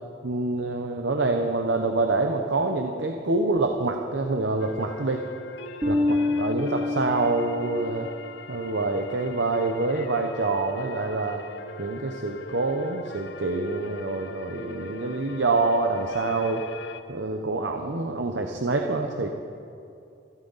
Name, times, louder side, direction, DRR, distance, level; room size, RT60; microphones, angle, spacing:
voice 1, 0.2-5.3 5.9-8.1 8.5-11.4 11.8-16.6 17.1-19.3, right 3 dB, 70° right, 3 dB, 0.9 m, -26 dB
sound 1, 4.6-17.0, left 2 dB, 75° left, 0.8 m, -41 dB
Bass guitar, 5.8-8.2, left 2 dB, 20° right, 1.0 m, -27 dB
26.5 x 12.0 x 4.1 m, 2.6 s
head